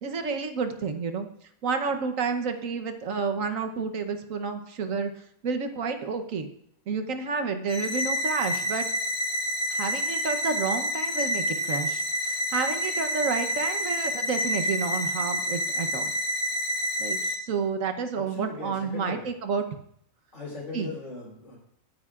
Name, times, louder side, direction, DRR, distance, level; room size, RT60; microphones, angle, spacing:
voice 1, 0.0-1.3 1.6-5.1 5.4-6.5 6.9-8.9 9.7-16.1 17.0-19.6 20.7-20.9, right 5 dB, 70° right, 7 dB, 1.4 m, -30 dB
sound 1, 7.7-17.4, equal, 35° left, 1.4 m, -28 dB
voice 2, 18.3-19.2 20.3-21.6, left 2 dB, 70° left, -2 dB, 4.5 m, -38 dB
21.5 x 10.0 x 2.5 m, 0.68 s
omnidirectional pair, 1.4 m